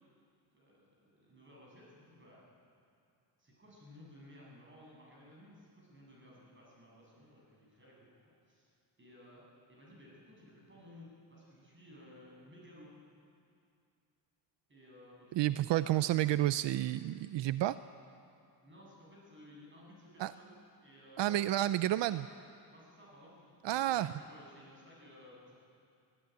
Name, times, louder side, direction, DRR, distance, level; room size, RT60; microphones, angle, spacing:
voice 1, 0.5-2.5 3.4-8.1 8.4-8.7 9.0-9.4 9.7-12.9 14.7-16.2 18.6-21.4 22.0-22.3 22.7-25.6, left 1 dB, 25° right, -3 dB, 7.9 m, -57 dB
voice 2, 15.3-17.8 20.2-20.3 21.2-22.2 23.6-24.1, right 14 dB, 80° right, 14 dB, 0.6 m, -30 dB
23.5 x 14.5 x 9.4 m, 2.4 s
cardioid pair, 135°, 43 cm